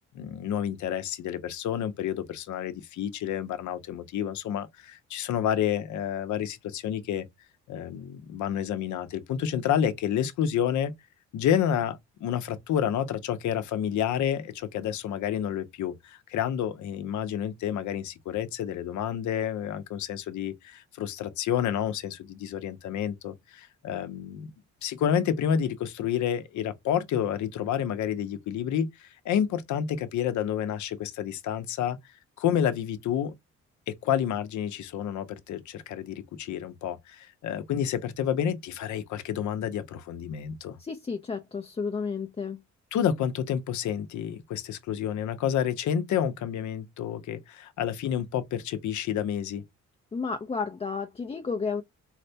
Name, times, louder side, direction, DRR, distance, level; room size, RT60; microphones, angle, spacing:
voice 1, 0.1-7.3 7.7-10.9 11.3-24.5 24.8-32.0 32.4-33.3 33.9-40.8 42.9-49.6, left 9 dB, 75° left, 0.7 m, -29 dB
voice 2, 40.8-42.6 50.1-51.8, left 5 dB, 20° left, 0.4 m, -32 dB
4.1 x 2.2 x 2.7 m
cardioid pair, 90°, 30 cm